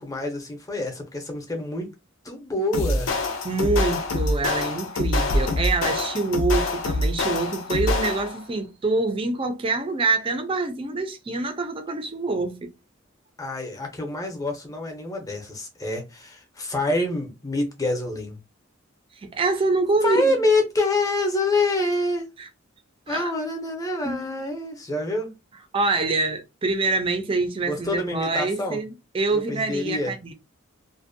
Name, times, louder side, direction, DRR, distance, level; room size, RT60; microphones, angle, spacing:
voice 1, 0.0-1.9 2.2-3.1 13.4-18.4 20.0-22.3 23.1-25.3 27.7-28.8 29.3-30.1, left 2 dB, 15° left, 0.6 m, -26 dB
sound 1, 2.7-8.4, left 2 dB, 70° left, 0.5 m, -25 dB
voice 2, 3.4-12.7 19.2-20.3 22.4-22.5 23.1-23.3 24.0-24.3 25.7-30.3, right 3 dB, 25° right, 0.4 m, -25 dB
2.5 x 2.1 x 2.6 m
head